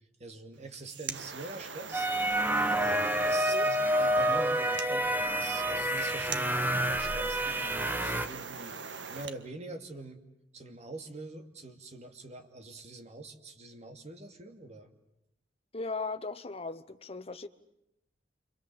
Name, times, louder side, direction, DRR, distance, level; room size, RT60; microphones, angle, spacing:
voice 1, 0.2-2.1 2.7-8.8 9.1-10.2 10.5-14.9, right 3 dB, 40° right, 2.6 m, -45 dB
sound 1, 0.6-9.4, right 5 dB, 85° right, 1.5 m, -42 dB
sound 2, 1.9-8.3, right 1 dB, 10° right, 1.0 m, -28 dB
voice 2, 15.7-17.5, left 3 dB, 35° left, 1.1 m, -37 dB
28.5 x 25.5 x 7.7 m
head